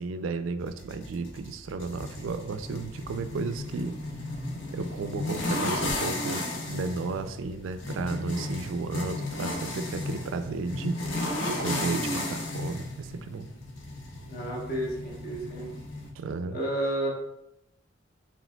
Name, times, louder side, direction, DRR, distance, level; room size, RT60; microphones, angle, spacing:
voice 1, 0.0-4.0 4.7-11.1 11.4-13.5 16.2-16.6, right 4 dB, 85° right, 11 dB, 0.3 m, -34 dB
sound 1, 0.6-16.1, left 2 dB, 75° left, 0.8 m, -34 dB
voice 2, 14.3-15.7 16.5-17.1, right 1 dB, 50° left, -4 dB, 1.1 m, -31 dB
4.9 x 3.5 x 2.2 m, 0.84 s
head